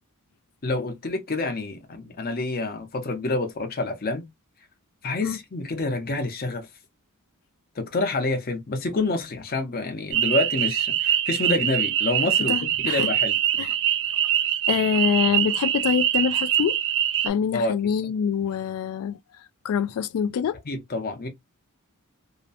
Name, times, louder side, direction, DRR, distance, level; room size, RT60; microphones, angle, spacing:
voice 1, 0.6-4.3 5.0-6.7 7.8-13.3 17.5-17.7 20.7-21.3, left 2 dB, 45° left, 0.7 m, -27 dB
sound 1, 10.1-17.3, right 11 dB, 60° right, 0.4 m, -24 dB
voice 2, 12.5-13.1 13.6-13.7 14.7-16.8 17.2-19.2 19.6-20.5, left 7 dB, 75° left, 0.3 m, -25 dB
2.7 x 2.0 x 2.7 m
head